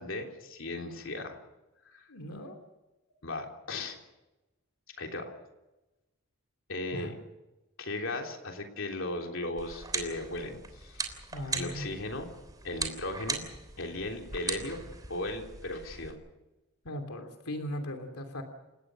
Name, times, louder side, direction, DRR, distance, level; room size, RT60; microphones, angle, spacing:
voice 1, 0.0-1.4 1.9-2.1 3.2-4.0 5.0-5.3 6.7-7.2 7.8-11.2 11.5-12.3 12.6-13.4 13.8-14.8 15.1-16.2, left 2 dB, 60° left, 2 dB, 3.4 m, -37 dB
voice 2, 2.1-2.6 6.9-7.1 11.3-11.9 16.8-18.4, left 1 dB, 85° left, 5 dB, 3.1 m, -38 dB
sound 1, 9.6-16.1, right 4 dB, 15° right, 3.4 m, -39 dB
29.5 x 17.5 x 6.4 m, 1.0 s
head